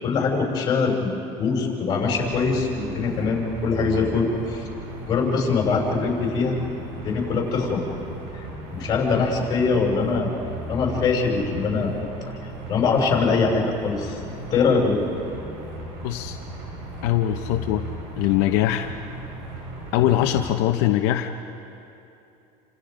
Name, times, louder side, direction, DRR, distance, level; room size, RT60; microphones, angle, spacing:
voice 1, 0.0-4.7 5.1-6.6 7.0-7.8 8.3-8.4 8.7-10.3 10.7-11.9 12.7-14.2 14.5-15.0, left 4 dB, 30° left, -1 dB, 5.7 m, -23 dB
sound 1, 2.0-20.6, right 1 dB, 80° right, 6.4 m, -37 dB
voice 2, 16.0-16.4 17.0-17.9 18.2-18.9 19.9-21.3, left 13 dB, 75° left, 4 dB, 1.0 m, -22 dB
29.5 x 26.5 x 5.2 m, 2.7 s
cardioid pair, 155°, 13 cm